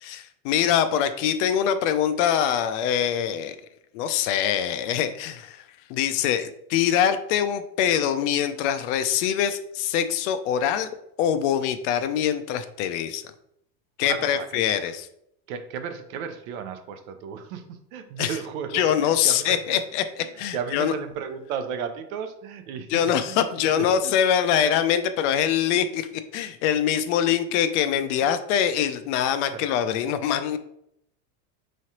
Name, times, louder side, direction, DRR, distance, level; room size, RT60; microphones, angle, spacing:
voice 1, 0.1-3.6 3.9-5.6 5.9-10.9 11.2-13.2 14.0-15.1 18.2-18.3 18.7-20.0 20.4-20.9 22.9-30.6, left 9 dB, 55° left, 10 dB, 0.5 m, -24 dB
voice 2, 14.0-14.6 15.5-19.8 20.2-24.1 27.3-27.4 29.5-29.6 30.0-30.1, right 7 dB, 70° right, 8 dB, 0.7 m, -35 dB
4.8 x 3.2 x 2.8 m, 0.75 s
supercardioid pair, 150°, 44 cm